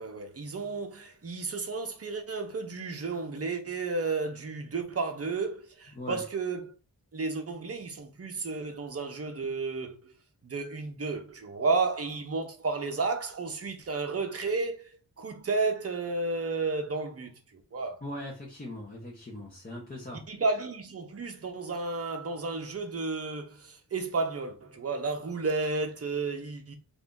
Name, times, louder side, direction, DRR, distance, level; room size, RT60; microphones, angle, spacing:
voice 1, 0.0-6.7 7.1-10.1 10.4-14.9 15.2-18.0 20.3-26.8, right 3 dB, 35° right, 0.8 m, -32 dB
voice 2, 5.9-6.2 18.0-20.3, left 1 dB, 20° left, 0.9 m, -40 dB
2.7 x 2.6 x 3.6 m
wide cardioid pair, 95°, 41 cm